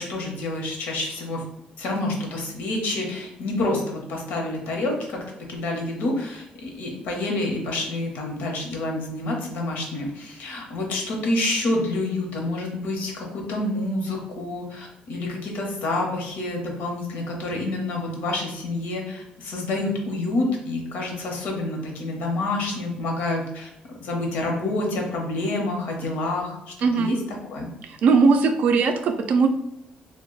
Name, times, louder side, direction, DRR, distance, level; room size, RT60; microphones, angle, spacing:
voice 1, 0.0-1.4 1.8-5.2 5.5-23.7 24.0-27.2 27.5-27.7, left 2 dB, 80° left, 0 dB, 0.8 m, -28 dB
voice 2, 26.8-27.2 27.9-29.5, right 4 dB, 55° right, 6 dB, 0.3 m, -19 dB
2.3 x 2.2 x 3.7 m, 0.81 s
cardioid pair, 155°, 3 cm